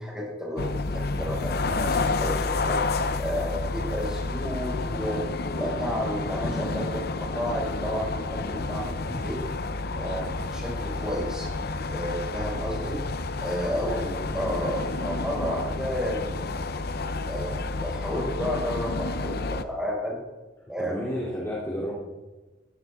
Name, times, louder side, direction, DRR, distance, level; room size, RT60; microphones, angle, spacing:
voice 1, 0.0-2.8 3.2-5.2 5.5-9.4 9.9-11.5 11.9-13.0 13.4-13.9 14.3-16.7 17.2-17.5 17.8-20.2 20.7-20.9, equal, 5° right, -3 dB, 5.8 m, -32 dB
sound 1, 0.6-19.6, left 3 dB, 55° left, 0.8 m, -30 dB
voice 2, 13.8-14.4 20.8-21.9, equal, 15° left, -6 dB, 3.1 m, -32 dB
17.5 x 17.0 x 3.7 m, 1.1 s
head